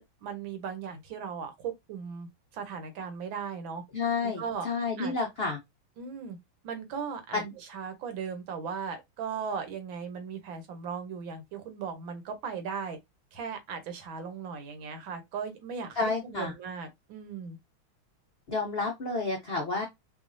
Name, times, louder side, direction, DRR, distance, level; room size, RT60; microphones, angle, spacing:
voice 1, 0.0-3.8 4.2-4.7 5.0-5.1 6.0-6.4 6.6-13.0 13.3-17.6, right 6 dB, 70° right, 1.6 m, -37 dB
voice 2, 3.9-5.6 7.3-7.5 16.0-16.5 18.5-19.9, left 4 dB, 90° left, 0.5 m, -30 dB
4.9 x 2.3 x 2.6 m
omnidirectional pair, 2.3 m